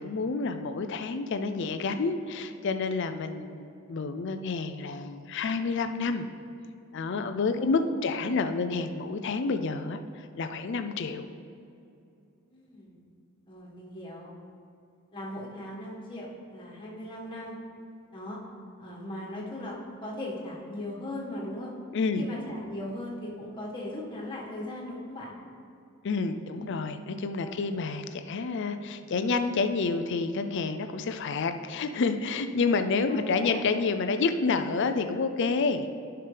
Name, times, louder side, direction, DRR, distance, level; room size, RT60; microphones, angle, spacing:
voice 1, 0.0-6.3 6.9-11.3 21.9-22.3 26.0-35.9, left 4 dB, 60° left, 9 dB, 0.5 m, -29 dB
voice 2, 7.4-8.0 12.5-13.0 13.5-14.3 15.1-17.6 18.1-18.4 18.8-19.7 20.0-21.7 22.2-25.3 26.5-26.7 27.4-27.6 33.1-33.6, left 1 dB, 25° left, -5 dB, 1.7 m, -38 dB
11.0 x 5.8 x 3.4 m, 2.7 s
head